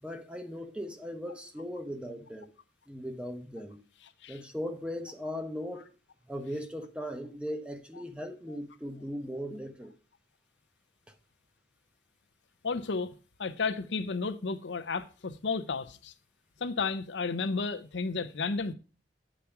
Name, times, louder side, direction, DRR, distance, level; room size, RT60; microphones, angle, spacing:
voice 1, 0.0-2.5 2.9-3.8 4.3-5.9 6.3-9.9 11.1-11.2, equal, 5° right, 0.9 m, -38 dB
voice 2, 12.6-13.1 13.4-16.1 16.6-18.7, left 4 dB, 85° left, 0.7 m, -32 dB
8.3 x 5.0 x 5.8 m
head